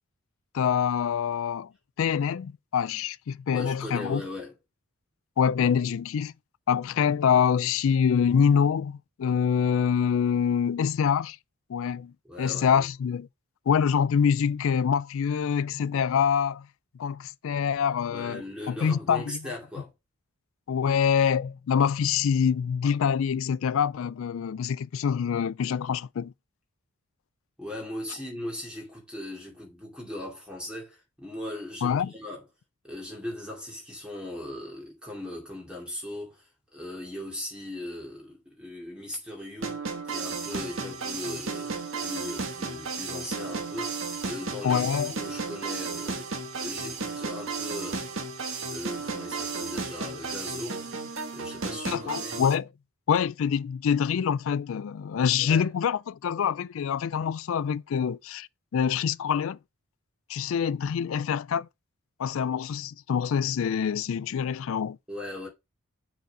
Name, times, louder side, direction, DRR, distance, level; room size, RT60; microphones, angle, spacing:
voice 1, 0.5-1.7 2.0-4.2 5.4-6.3 6.7-11.4 11.7-13.3 13.7-16.7 17.0-19.4 20.7-26.3 31.8-32.1 44.6-45.1 51.9-52.7 53.1-59.6 60.3-61.7 62.2-65.0, left 7 dB, 65° left, 0.3 m, -25 dB
voice 2, 3.5-4.5 12.3-12.8 18.1-19.9 27.6-32.4 32.8-46.3 46.6-48.1 48.7-50.9 51.3-52.4 55.4-55.7 65.1-65.5, left 1 dB, 5° right, 2.4 m, -39 dB
sound 1, 39.6-52.5, right 4 dB, 60° right, 1.3 m, -34 dB
6.7 x 4.0 x 4.6 m
head